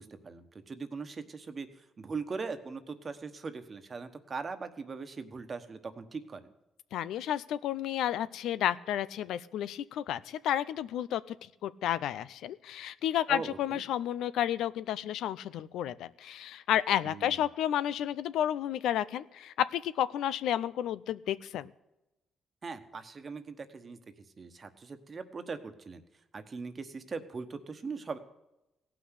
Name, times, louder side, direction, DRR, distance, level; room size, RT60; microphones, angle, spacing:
voice 1, 0.0-6.5 13.3-13.8 17.0-17.4 22.6-24.0 24.4-26.0 26.3-28.2, right 4 dB, 35° right, 8 dB, 1.3 m, -40 dB
voice 2, 6.9-11.4 11.6-21.7, left 11 dB, 80° left, 16 dB, 0.5 m, -31 dB
16.5 x 6.0 x 8.2 m, 0.93 s
cardioid pair, 90°, 0 cm